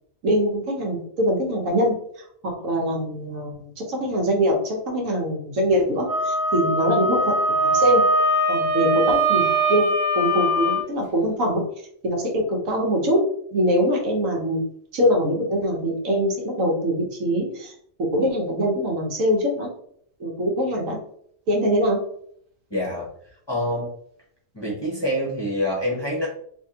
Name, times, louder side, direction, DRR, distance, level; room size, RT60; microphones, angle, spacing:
voice 1, 0.2-8.0 8.5-9.9 10.1-11.6 12.0-13.2 13.5-14.6 14.9-17.7 18.1-19.7 20.2-21.0 21.5-22.0, equal, 90° right, 0 dB, 1.3 m, -23 dB
Wind instrument woodwind instrument, 6.1-10.8, right 1 dB, 25° right, 0.4 m, -21 dB
voice 2, 22.7-23.1 23.5-23.9 24.5-26.3, equal, 25° left, -4 dB, 0.7 m, -26 dB
3.5 x 2.8 x 2.8 m, 0.65 s
omnidirectional pair, 1.3 m